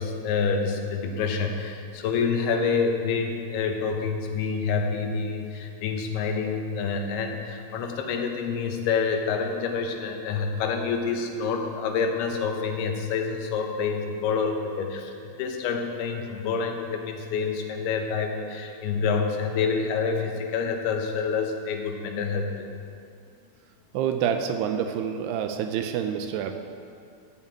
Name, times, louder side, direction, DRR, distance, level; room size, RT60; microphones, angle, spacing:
voice 1, 0.0-15.1 15.4-22.7, left 5 dB, 75° left, 3 dB, 2.8 m, -27 dB
voice 2, 23.9-26.5, right 8 dB, 80° right, 6 dB, 2.5 m, -27 dB
13.5 x 5.5 x 8.7 m, 2.4 s
omnidirectional pair, 5.0 m